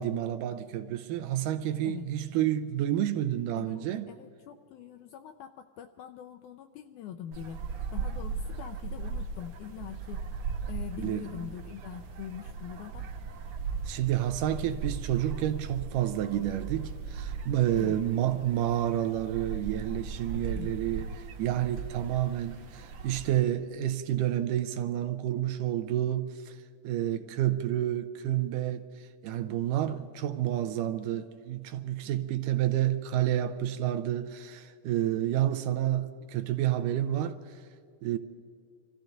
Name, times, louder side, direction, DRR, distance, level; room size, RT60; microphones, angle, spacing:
voice 1, 0.0-4.1 11.0-11.3 13.9-26.6 26.8-37.6 38.0-38.2, right 12 dB, 80° right, 2.1 m, -29 dB
voice 2, 3.5-7.6 7.9-10.2 10.6-13.1 17.8-18.0 20.5-20.8 32.0-32.3, left 10 dB, 85° left, 1.8 m, -43 dB
sound 1, 7.3-23.4, right 5 dB, 65° right, 1.8 m, -38 dB
25.0 x 14.5 x 3.9 m
omnidirectional pair, 4.0 m